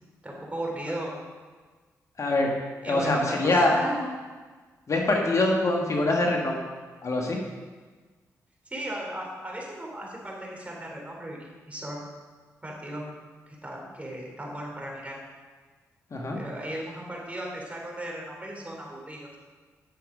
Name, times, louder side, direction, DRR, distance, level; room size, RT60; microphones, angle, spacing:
voice 1, 0.2-1.1 2.8-4.0 8.7-12.0 12.6-13.0 13.5-15.2 16.4-19.4, right 1 dB, 20° right, -2 dB, 3.5 m, -36 dB
voice 2, 2.2-2.5 2.9-3.8 4.9-6.5 7.0-7.4 16.1-16.4, left 2 dB, 50° left, 0 dB, 1.7 m, -24 dB
10.0 x 6.8 x 5.1 m, 1.4 s
supercardioid pair, 50°, 7 cm